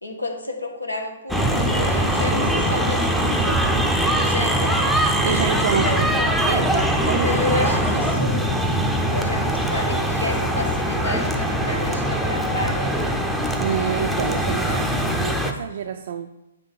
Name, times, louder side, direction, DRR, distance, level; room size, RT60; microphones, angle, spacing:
voice 1, 0.0-3.6 4.1-6.4 7.0-8.6 9.1-13.1, left 2 dB, 90° left, 3 dB, 1.1 m, -31 dB
sound 1, 1.3-15.5, right 1 dB, ahead, 0.5 m, -22 dB
voice 2, 5.2-6.1 6.5-8.2 13.6-16.3, right 8 dB, 55° right, 5 dB, 0.3 m, -28 dB
9.1 x 3.2 x 4.0 m, 0.94 s
figure-of-eight pair, 125°, 0 cm